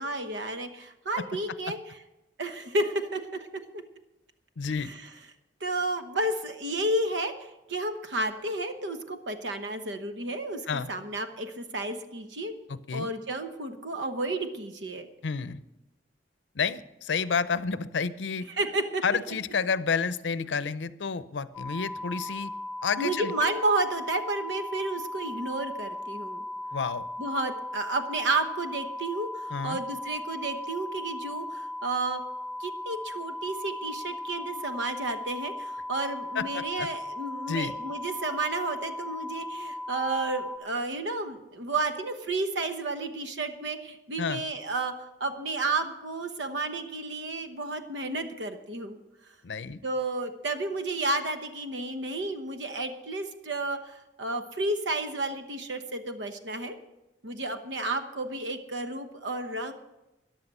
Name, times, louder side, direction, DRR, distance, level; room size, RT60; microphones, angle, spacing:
voice 1, 0.0-2.0 2.4-3.8 4.8-5.0 5.6-12.5 12.9-15.1 18.6-19.0 23.0-26.4 27.2-32.2 32.6-44.9 45.2-49.0 49.8-56.8 57.2-59.7, right 2 dB, 85° right, 8 dB, 1.1 m, -31 dB
voice 2, 4.6-4.9 10.7-10.9 12.7-13.1 15.2-15.6 16.5-18.5 19.0-22.5 22.8-23.5 26.7-27.0 29.5-29.8 36.3-36.9 37.5-37.7 44.2-44.4 49.4-49.8, left 5 dB, 90° left, 15 dB, 0.6 m, -30 dB
sound 1, 21.5-40.6, left 1 dB, ahead, 1.1 m, -37 dB
14.0 x 10.5 x 5.5 m, 0.97 s
head